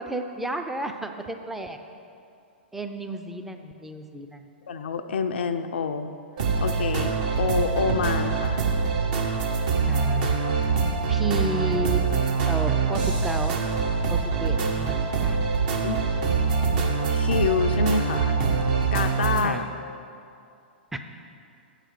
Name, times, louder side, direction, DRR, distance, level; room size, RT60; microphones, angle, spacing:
voice 1, 0.0-1.8 2.7-4.5 9.8-10.4 11.1-12.0 12.5-13.6 14.1-15.4 19.4-19.7 20.9-21.0, right 1 dB, 5° right, 5 dB, 0.5 m, -32 dB
voice 2, 4.7-6.1 6.6-7.1 7.4-8.6 15.7-16.0 17.1-18.4 18.9-19.6, left 5 dB, 70° left, 7 dB, 0.4 m, -27 dB
sound 1, 6.4-19.5, right 5 dB, 50° right, 1.1 m, -24 dB
7.7 x 4.9 x 6.5 m, 2.5 s
figure-of-eight pair, 110°, 6 cm